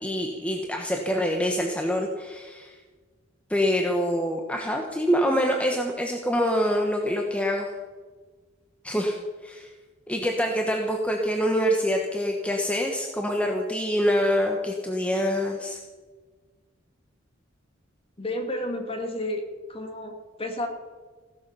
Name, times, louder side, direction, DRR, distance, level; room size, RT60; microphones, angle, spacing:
voice 1, 0.0-2.7 3.5-7.7 8.8-9.2 9.4-9.7 10.1-15.8, equal, 5° left, 1 dB, 1.2 m, -25 dB
voice 2, 18.2-19.4 19.7-20.7, left 1 dB, 30° left, 3 dB, 2.3 m, -31 dB
16.5 x 12.5 x 5.6 m, 1.4 s
head